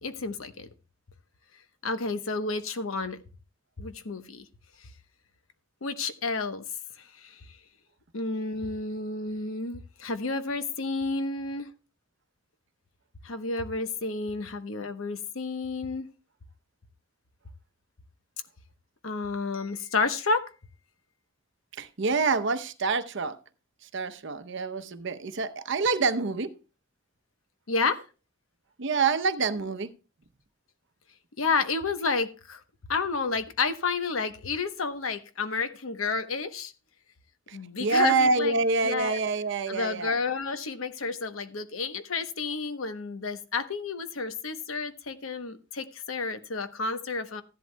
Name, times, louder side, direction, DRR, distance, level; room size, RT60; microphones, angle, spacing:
voice 1, 0.0-0.7 1.8-3.2 3.8-4.4 5.8-6.6 7.0-7.4 8.1-11.7 13.2-16.1 19.0-20.5 27.7-28.0 31.4-32.6 32.9-36.7 37.5-38.5 38.8-39.2 39.7-47.4, left 4 dB, 90° left, 1.0 m, -30 dB
voice 2, 21.8-23.4 23.8-26.5 28.8-29.9 37.5-40.1, right 4 dB, 60° right, 0.8 m, -26 dB
15.0 x 11.0 x 2.2 m
head